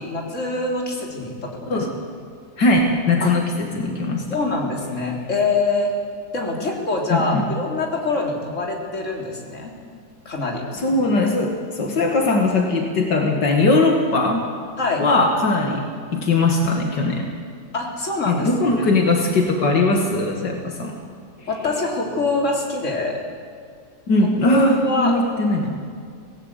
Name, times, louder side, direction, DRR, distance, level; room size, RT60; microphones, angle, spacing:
voice 1, 0.0-1.9 3.2-3.3 4.3-5.9 6.3-9.8 10.3-10.6 14.8-15.0 17.7-18.5 18.8-18.9 21.5-23.2 24.5-25.1, left 3 dB, 45° left, 0 dB, 3.8 m, -24 dB
voice 2, 2.6-4.3 7.1-7.5 10.7-14.5 15.0-15.9 16.1-17.3 18.3-21.0 24.1-25.8, left 2 dB, 80° left, 1 dB, 2.7 m, -20 dB
25.5 x 18.0 x 8.3 m, 2.1 s
omnidirectional pair, 1.9 m